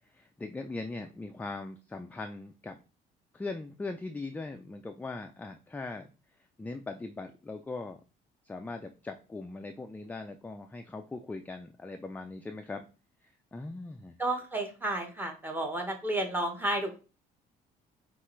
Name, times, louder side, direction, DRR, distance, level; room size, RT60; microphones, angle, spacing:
voice 1, 0.1-2.8 3.3-6.1 6.6-8.0 8.4-12.9 13.5-14.2, left 3 dB, 10° left, 5 dB, 0.3 m, -40 dB
voice 2, 14.2-17.0, right 1 dB, 10° right, 4 dB, 1.0 m, -32 dB
5.5 x 2.5 x 3.1 m, 0.33 s
cardioid pair, 110°, 17 cm